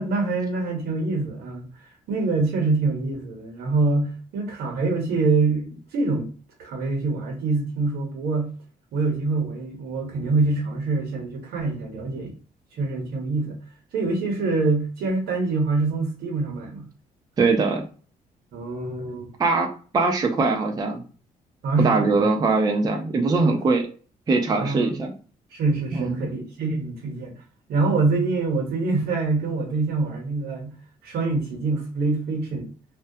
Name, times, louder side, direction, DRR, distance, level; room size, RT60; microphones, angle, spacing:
voice 1, 0.0-1.7 2.1-6.3 6.6-8.5 8.9-12.3 12.7-13.6 13.9-16.8 18.5-19.3 21.6-22.3 24.5-25.0 25.5-27.3 27.7-30.7 31.0-32.7, right 3 dB, 80° right, 0.8 m, -25 dB
voice 2, 17.4-17.9 19.4-19.7 19.9-21.0 21.8-23.9 24.3-25.1 25.9-26.2, right 3 dB, 25° right, 0.4 m, -21 dB
2.2 x 2.1 x 2.6 m
cardioid pair, 115°, 16 cm